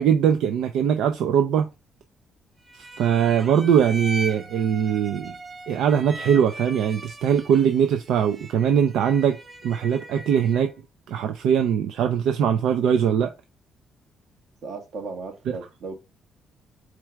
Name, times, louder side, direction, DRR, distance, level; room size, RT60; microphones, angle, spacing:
voice 1, 0.0-1.7 2.7-5.3 5.7-9.4 9.6-10.7 11.1-13.3 15.5-15.6, right 8 dB, 85° right, 0.5 m, -21 dB
sound 1, 2.6-10.8, right 1 dB, 20° right, 0.8 m, -39 dB
voice 2, 14.6-15.9, right 4 dB, 65° right, 1.5 m, -35 dB
4.4 x 2.5 x 4.5 m
cardioid pair, 90°, 0 cm